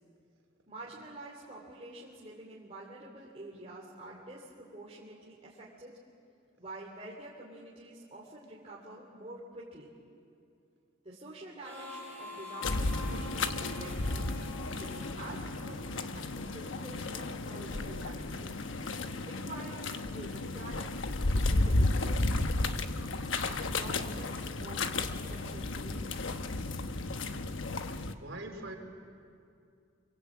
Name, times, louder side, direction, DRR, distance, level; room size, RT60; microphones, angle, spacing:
voice 1, 0.7-6.0 6.6-9.9 11.0-14.3 14.8-18.6 19.2-21.0 21.3-23.0 23.4-26.4, right 2 dB, 30° right, -5 dB, 3.2 m, -48 dB
Harmonica, 11.6-16.1, left 2 dB, 10° left, 5.2 m, -46 dB
sound 1, 12.6-28.1, left 2 dB, 80° left, 1.1 m, -33 dB
voice 2, 28.0-28.8, right 2 dB, 75° right, 2 dB, 3.6 m, -42 dB
25.5 x 23.0 x 8.6 m, 2.4 s
head